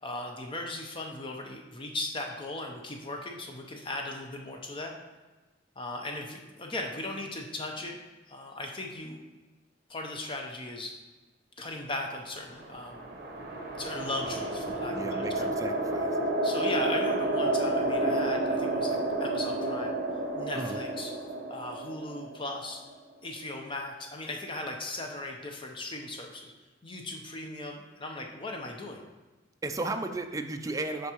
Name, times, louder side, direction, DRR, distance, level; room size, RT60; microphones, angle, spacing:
voice 1, 0.0-4.9 5.8-8.0 8.3-9.2 9.9-11.0 11.6-13.1 13.8-15.5 16.4-20.0 20.3-21.1 21.5-22.9 23.2-26.5 26.8-29.0, left 2 dB, 25° left, 2 dB, 0.7 m, -38 dB
sound 1, 12.5-22.9, right 2 dB, 55° right, 0.9 m, -30 dB
voice 2, 14.9-16.3 20.5-20.8 29.6-31.1, right 2 dB, 15° right, 6 dB, 0.4 m, -35 dB
8.2 x 5.3 x 2.9 m, 1.2 s
head